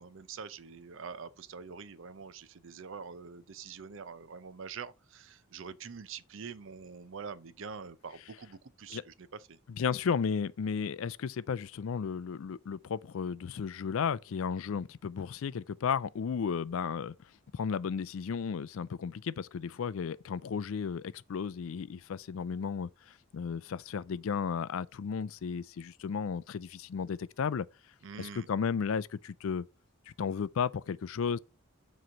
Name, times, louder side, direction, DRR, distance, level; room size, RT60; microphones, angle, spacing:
voice 1, 0.0-9.6 28.0-28.5, right 5 dB, 60° right, 0.5 m, -45 dB
voice 2, 9.7-17.1 17.5-22.9 23.3-27.7 28.2-29.7 30.2-31.4, left 6 dB, 70° left, 0.4 m, -34 dB
7.6 x 3.1 x 5.6 m
head